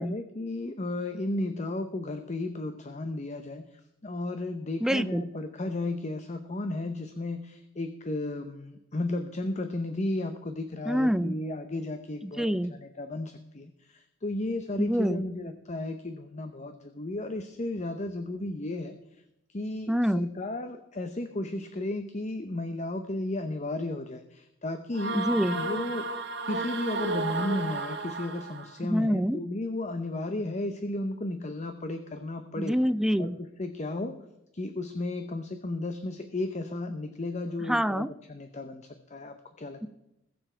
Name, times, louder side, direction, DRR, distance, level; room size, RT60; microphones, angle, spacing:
voice 1, 0.0-12.5 12.7-19.2 19.5-25.1 25.5-26.1 26.4-32.8 33.2-34.1 34.5-39.9, left 2 dB, 35° left, 8 dB, 0.8 m, -34 dB
voice 2, 4.8-5.2 10.9-11.4 12.2-12.7 14.8-15.2 19.9-20.3 25.1-25.6 28.8-29.4 32.6-33.4 37.7-38.1, equal, 5° right, 14 dB, 0.3 m, -26 dB
sound 1, 24.9-28.7, right 3 dB, 60° right, 1.3 m, -32 dB
21.0 x 7.1 x 4.5 m, 0.86 s
head